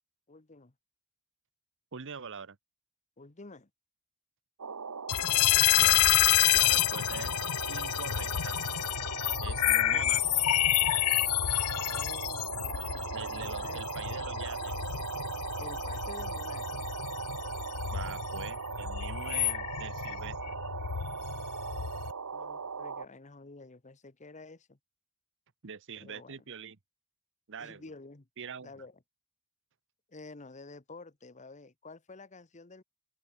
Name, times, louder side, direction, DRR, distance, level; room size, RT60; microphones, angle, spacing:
voice 1, 0.3-0.7 3.2-3.7 9.7-10.1 11.6-13.8 15.6-16.9 22.3-24.8 26.0-26.4 27.6-28.3 28.6-29.0 30.1-32.8, left 3 dB, 35° left, 1.1 m, -49 dB
voice 2, 1.9-2.6 5.8-6.1 6.5-7.4 7.7-8.6 9.4-10.2 13.1-14.9 17.9-20.6 25.6-26.8 27.5-27.8 28.4-28.7, right 6 dB, 60° right, 1.0 m, -43 dB
sound 1, 4.6-23.0, right 5 dB, 80° right, 1.0 m, -39 dB
sound 2, 5.1-22.1, left 15 dB, 80° left, 0.4 m, -29 dB
open air
head